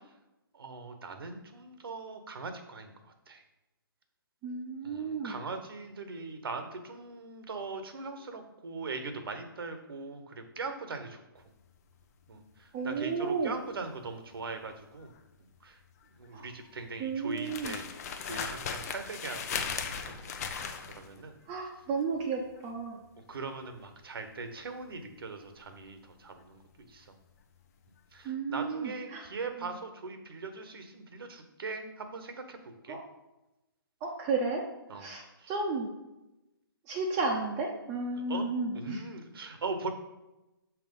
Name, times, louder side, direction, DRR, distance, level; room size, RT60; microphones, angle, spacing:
voice 1, 0.6-2.9 3.3-3.4 4.8-11.2 12.3-12.4 12.8-15.1 15.6-15.7 16.2-17.9 18.2-20.3 21.0-21.3 23.3-26.0 26.2-26.6 26.9-27.0 28.1-32.6 32.9-33.0 34.9-35.1 38.3-38.5 38.7-39.9, right 4 dB, 70° right, 7 dB, 1.2 m, -40 dB
voice 2, 4.4-5.4 12.7-13.6 16.3-16.4 17.0-17.8 21.5-23.0 28.2-29.3 29.6-29.7 32.9-33.0 34.0-34.6 34.9-35.9 36.9-39.0, right 4 dB, 25° right, 0 dB, 0.8 m, -33 dB
sound 1, 11.4-27.6 27.8-28.2, left 6 dB, 40° left, 0.7 m, -40 dB
6.0 x 4.3 x 5.4 m, 0.98 s
hypercardioid pair, 145°, 13 cm